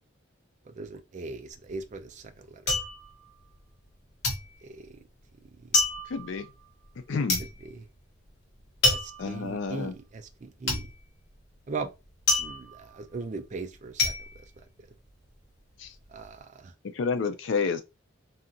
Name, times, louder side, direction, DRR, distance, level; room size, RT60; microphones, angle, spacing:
voice 1, 0.7-2.8 4.6-5.0 5.6-5.7 7.1-7.2 7.6-7.9 8.9-10.9 11.7-11.9 12.4-14.1 16.1-16.7, right 3 dB, 40° right, 0.4 m, -39 dB
sound 1, 1.5-3.9 4.2-15.4 15.7-16.3, left 2 dB, 60° left, 1.0 m, -30 dB
voice 2, 6.1-6.5 7.1-7.4 9.2-9.9 15.8-15.9 17.0-17.8, left 5 dB, 75° left, 0.4 m, -29 dB
2.7 x 2.4 x 2.6 m
head